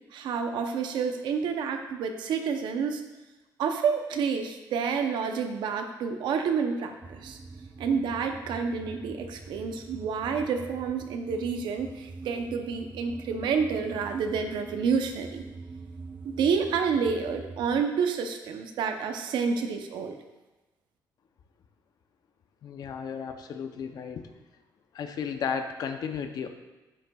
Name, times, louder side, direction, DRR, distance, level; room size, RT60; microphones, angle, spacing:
voice 1, 0.1-3.0 3.6-7.4 7.8-15.4 16.2-20.2, right 6 dB, 80° right, 5 dB, 0.7 m, -29 dB
sound 1, 7.0-17.8, right 4 dB, 20° right, 0.4 m, -44 dB
voice 2, 22.6-24.3 24.9-26.5, left 6 dB, 55° left, 7 dB, 0.6 m, -34 dB
9.1 x 6.6 x 2.3 m, 1.1 s
cardioid pair, 145°, 8 cm